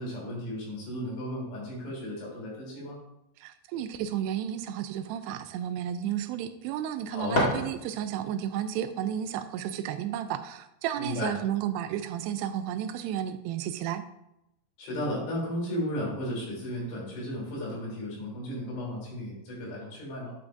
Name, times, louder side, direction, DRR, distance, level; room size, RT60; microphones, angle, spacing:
voice 1, 0.0-3.0 7.1-7.4 11.0-11.3 14.8-20.4, left 1 dB, 80° left, -4 dB, 5.4 m, -34 dB
voice 2, 3.4-14.0, right 10 dB, 85° right, 10 dB, 2.6 m, -32 dB
sound 1, 6.8-8.3, equal, 45° left, 1.1 m, -30 dB
11.5 x 7.3 x 2.6 m, 0.84 s
omnidirectional pair, 4.8 m